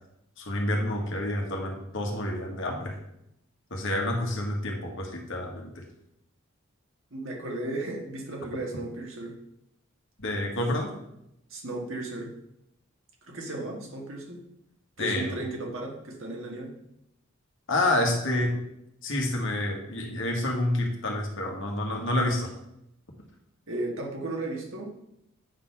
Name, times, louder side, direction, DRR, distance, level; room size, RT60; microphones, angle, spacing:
voice 1, 0.4-3.0 3.7-5.8 10.2-10.9 15.0-15.4 17.7-18.6 19.0-22.5, left 1 dB, 60° left, 1 dB, 1.7 m, -28 dB
voice 2, 7.1-9.4 11.5-12.3 13.2-14.4 15.0-16.7 23.7-25.0, right 2 dB, 65° right, 0 dB, 2.0 m, -35 dB
8.8 x 4.2 x 5.8 m, 0.80 s
head